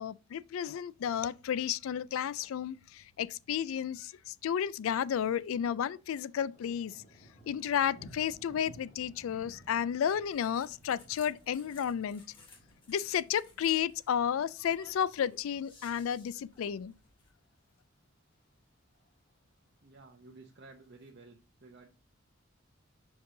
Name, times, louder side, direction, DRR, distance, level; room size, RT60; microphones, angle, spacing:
voice 1, 0.0-7.0 7.5-12.2 12.9-16.9, left 8 dB, 80° left, 0.3 m, -32 dB
Thunder, 5.0-5.5 5.8-16.2 16.6-16.9 17.4-17.8 18.1-18.2 18.3-18.4 18.8-19.4 20.2-21.1, equal, 45° left, 1.5 m, -59 dB
sound 1, 10.1-17.3, left 3 dB, 25° left, 1.6 m, -59 dB
voice 2, 19.8-21.9, right 3 dB, 50° right, 0.7 m, -54 dB
5.4 x 4.7 x 3.7 m
head